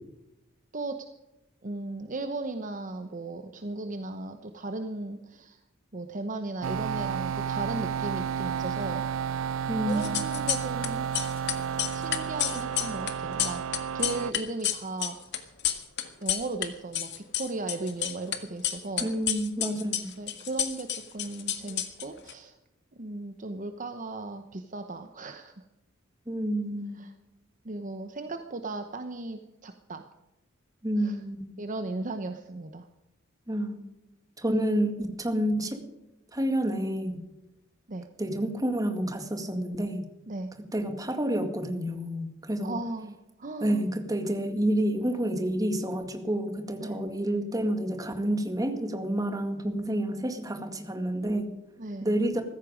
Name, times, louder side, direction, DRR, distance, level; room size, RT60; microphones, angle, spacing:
voice 1, 1.6-5.6 5.9-9.0 9.9-11.1 11.9-13.6 13.9-15.5 16.2-19.1 20.2-22.5 23.0-25.6 27.0-27.1 27.6-30.1 31.0-31.2 31.6-32.9 37.9-38.1 40.3-40.5 42.6-43.9 46.8-47.0 51.8-52.1, right 2 dB, 40° right, 7 dB, 0.9 m, -36 dB
sound 1, 6.6-14.3, right 7 dB, 75° right, 0.4 m, -32 dB
voice 2, 9.7-10.3 19.0-20.2 26.3-27.0 30.8-31.6 33.5-33.8 34.4-35.8 36.3-37.1 38.2-40.0 40.6-42.8 43.6-51.5 52.0-52.4, right 1 dB, 20° right, 6 dB, 2.0 m, -29 dB
sound 2, 9.9-10.9 11.1-16.7 16.9-18.4 18.6-22.3, left 11 dB, 60° left, 1.8 m, -30 dB
15.5 x 14.5 x 5.1 m, 0.96 s
head